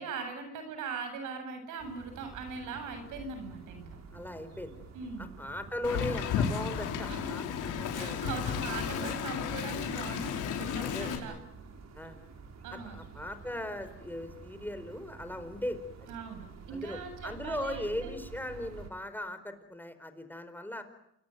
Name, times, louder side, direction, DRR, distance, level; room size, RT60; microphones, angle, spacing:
voice 1, 0.0-3.9 4.9-5.3 7.1-7.2 7.9-11.4 12.6-12.9 16.1-18.1, right 5 dB, 90° right, 8 dB, 7.8 m, -40 dB
sound 1, 1.8-18.9, right 5 dB, 60° right, 5.1 m, -50 dB
voice 2, 4.1-4.8 5.2-8.2 9.0-9.2 10.8-11.4 12.0-12.2 12.7-15.8 16.7-20.8, left 1 dB, 5° left, 9 dB, 4.4 m, -38 dB
Wind, 5.8-11.1, left 7 dB, 90° left, 5.0 m, -33 dB
28.5 x 22.0 x 9.3 m, 0.80 s
cardioid pair, 90°, 30 cm